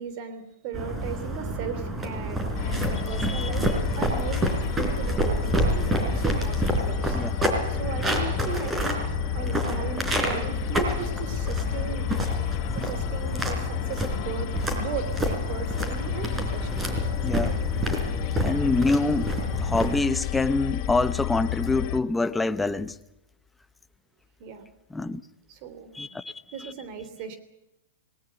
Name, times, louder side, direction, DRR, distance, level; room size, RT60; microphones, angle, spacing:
voice 1, 0.0-4.4 4.7-7.2 7.7-9.0 9.3-12.1 12.7-17.1 24.4-24.7 25.5-25.9 26.5-27.4, right 7 dB, 45° right, 3.2 m, -37 dB
sound 1, 0.7-20.0, right 1 dB, 15° right, 4.3 m, -29 dB
sound 2, 2.5-22.0, left 15 dB, 45° left, 1.2 m, -31 dB
voice 2, 17.2-17.6 18.4-19.3 19.6-23.0 24.9-25.2 25.9-26.3, left 3 dB, 5° left, 0.8 m, -25 dB
19.5 x 19.0 x 8.8 m
hypercardioid pair, 145°, 0 cm